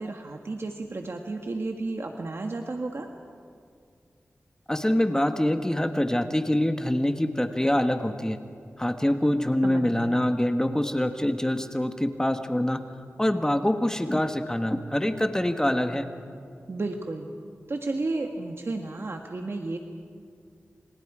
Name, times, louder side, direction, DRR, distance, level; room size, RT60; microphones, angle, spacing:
voice 1, 0.0-3.1 9.6-10.2 16.7-17.3 17.7-19.8, right 2 dB, 60° right, 3 dB, 1.6 m, -32 dB
voice 2, 4.7-8.4 8.8-12.8 13.2-16.1, left 1 dB, 15° left, 7 dB, 1.4 m, -25 dB
29.5 x 28.0 x 4.9 m, 2.3 s
cardioid pair, 55°, 5 cm